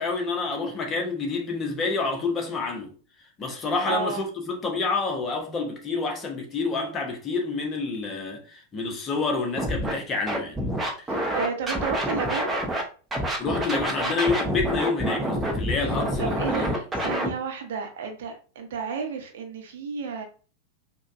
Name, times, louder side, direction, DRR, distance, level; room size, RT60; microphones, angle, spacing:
voice 1, 0.0-2.9 3.4-10.6 11.0-11.2 13.4-16.7, left 4 dB, 25° left, 0.9 m, -28 dB
voice 2, 3.9-4.3 11.1-12.6 16.2-20.2, right 5 dB, 55° right, 0.7 m, -32 dB
Scratching (performance technique), 9.6-9.9 10.3-12.8 13.1-17.3, equal, 10° right, 0.8 m, -27 dB
5.0 x 2.3 x 2.6 m
figure-of-eight pair, 90°, 0 cm